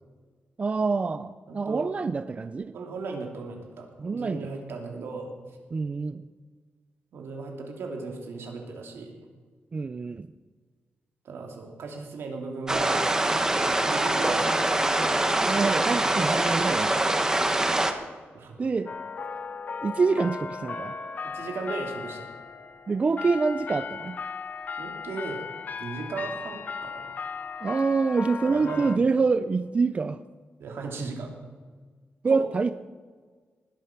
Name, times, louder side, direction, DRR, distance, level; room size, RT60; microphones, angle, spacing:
voice 1, 0.6-2.7 4.0-4.5 5.7-6.3 9.7-10.3 15.4-16.9 18.6-18.9 19.8-20.9 22.9-24.2 27.6-30.2 32.2-32.7, right 4 dB, 30° right, 12 dB, 0.4 m, -26 dB
voice 2, 1.5-1.9 2.7-5.3 7.1-9.2 11.2-13.0 13.6-14.9 18.3-18.6 21.2-22.3 24.8-25.4 25.8-27.1 28.4-28.9 30.6-31.3 32.3-32.5, right 4 dB, 85° right, 2 dB, 2.6 m, -36 dB
sound 1, 12.7-17.9, right 2 dB, 15° right, 1.1 m, -24 dB
sound 2, 18.9-29.0, left 5 dB, 45° left, 0.7 m, -37 dB
19.5 x 8.4 x 5.8 m, 1.5 s
wide cardioid pair, 135°, 4 cm